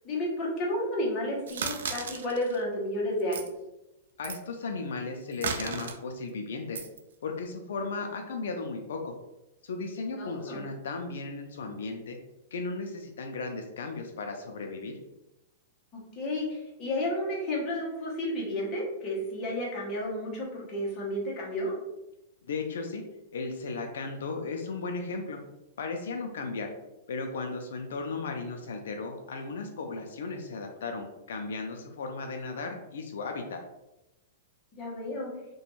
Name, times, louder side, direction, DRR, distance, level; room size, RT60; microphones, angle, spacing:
voice 1, 0.0-3.5 10.2-10.7 15.9-21.7 34.7-35.3, left 1 dB, 25° left, -4 dB, 0.8 m, -32 dB
sound 1, 1.5-2.6 3.2-3.5 4.2-4.4 5.3-5.9 6.7-7.0, right 6 dB, 85° right, 0.3 m, -34 dB
voice 2, 4.2-6.9 7.2-9.1 9.6-12.2 12.5-14.9 22.5-23.0 23.3-25.4 25.8-26.7 27.1-33.6, left 3 dB, 80° left, 4 dB, 0.3 m, -35 dB
2.4 x 2.2 x 3.0 m, 0.94 s
supercardioid pair, 165°, 0 cm